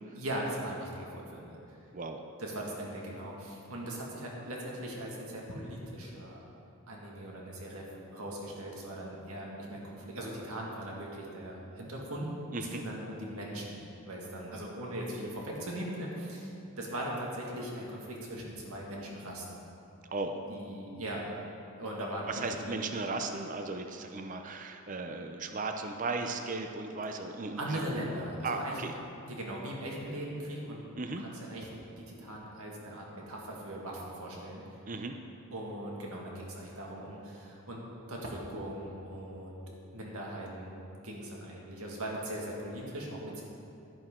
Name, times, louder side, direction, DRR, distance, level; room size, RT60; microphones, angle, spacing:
voice 1, 0.2-1.6 2.4-6.4 6.9-12.3 12.6-19.6 20.5-21.5 21.8-22.8 27.6-28.9 29.2-30.8 31.2-34.8 35.5-39.6 39.9-43.4, right 1 dB, 75° right, -2 dB, 2.0 m, -39 dB
voice 2, 12.5-12.8 20.1-20.4 22.3-28.1 28.4-28.9 31.0-31.2 34.9-35.1, right 3 dB, 35° right, 5 dB, 0.5 m, -36 dB
11.0 x 10.5 x 3.8 m, 2.7 s
head